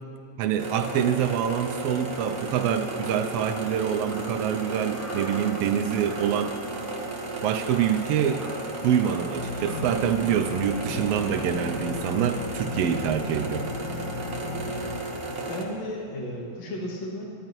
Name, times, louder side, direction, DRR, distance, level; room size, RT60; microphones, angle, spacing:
voice 1, 0.4-6.6 7.4-8.4 8.8-13.7, right 9 dB, 90° right, 8 dB, 1.3 m, -26 dB
sound 1, 0.6-15.6, right 2 dB, 60° right, 0.6 m, -34 dB
Crow, 3.3-13.1, equal, 5° right, 1.3 m, -47 dB
sound 2, 9.3-15.0, left 5 dB, 80° left, 2.6 m, -36 dB
voice 2, 15.2-17.2, left 1 dB, 65° left, -3 dB, 3.2 m, -34 dB
27.5 x 11.5 x 3.0 m, 2.3 s
omnidirectional pair, 3.3 m